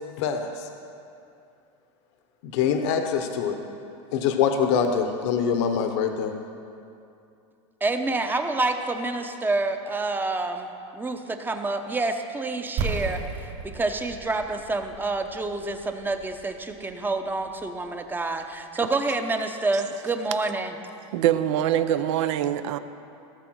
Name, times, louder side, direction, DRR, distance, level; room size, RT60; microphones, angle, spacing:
voice 1, 0.2-0.7 2.4-3.5 4.1-6.3, left 7 dB, 65° left, 6 dB, 1.1 m, -24 dB
voice 2, 7.8-21.1, right 3 dB, 10° right, 6 dB, 0.8 m, -28 dB
sound 1, 12.8-18.5, right 4 dB, 50° right, 2.3 m, -35 dB
voice 3, 21.1-22.8, right 11 dB, 70° right, 11 dB, 0.7 m, -23 dB
16.5 x 6.9 x 6.3 m, 2.6 s
supercardioid pair, 125°, 16 cm